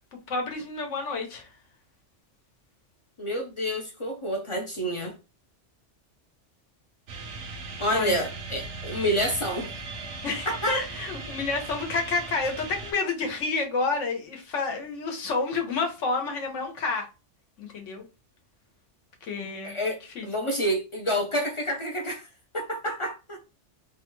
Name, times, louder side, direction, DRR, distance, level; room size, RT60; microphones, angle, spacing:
voice 1, 0.3-1.5 7.9-8.3 10.2-17.1 17.6-18.0 19.3-19.8 20.1-20.3, left 4 dB, 85° left, 1.2 m, -29 dB
voice 2, 3.2-5.1 7.8-9.7 10.5-10.8 19.4-22.3 22.5-23.4, equal, 50° left, 0.3 m, -28 dB
sound 1, 7.1-12.9, right 3 dB, 75° right, 1.0 m, -38 dB
3.1 x 2.2 x 3.0 m
omnidirectional pair, 1.2 m